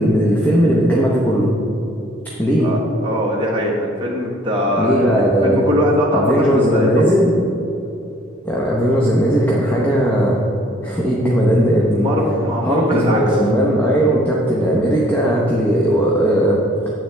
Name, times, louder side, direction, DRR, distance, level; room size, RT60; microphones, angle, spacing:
voice 1, 0.0-1.5 2.2-2.7 4.8-5.6 6.1-7.3 8.4-10.4 10.8-12.1 12.6-16.6, equal, 10° left, -4 dB, 0.8 m, -17 dB
voice 2, 2.6-7.0 11.9-13.2, equal, 25° right, -4 dB, 1.1 m, -21 dB
10.0 x 7.8 x 3.4 m, 2.8 s
head